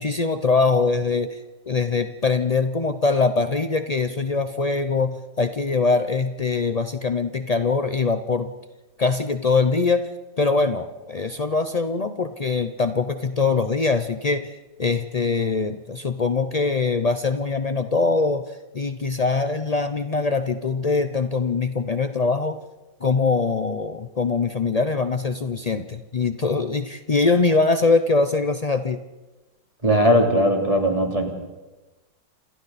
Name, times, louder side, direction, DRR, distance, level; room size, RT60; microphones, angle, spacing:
voice 1, 0.0-8.5 9.0-10.1 10.4-22.6 23.0-29.0, left 4 dB, 70° left, 9 dB, 0.3 m, -23 dB
voice 2, 29.8-31.3, equal, 20° right, 1 dB, 3.3 m, -19 dB
29.0 x 27.0 x 4.2 m, 1.1 s
omnidirectional pair, 1.9 m